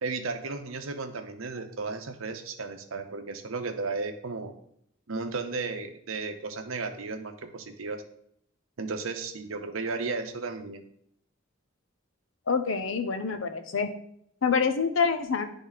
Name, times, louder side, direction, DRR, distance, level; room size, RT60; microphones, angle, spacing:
voice 1, 0.0-4.5 5.1-8.0 8.8-10.8, right 4 dB, 80° right, 6 dB, 0.8 m, -34 dB
voice 2, 12.5-13.9 14.4-15.4, left 5 dB, 70° left, 8 dB, 0.8 m, -26 dB
10.0 x 3.5 x 4.1 m, 0.70 s
head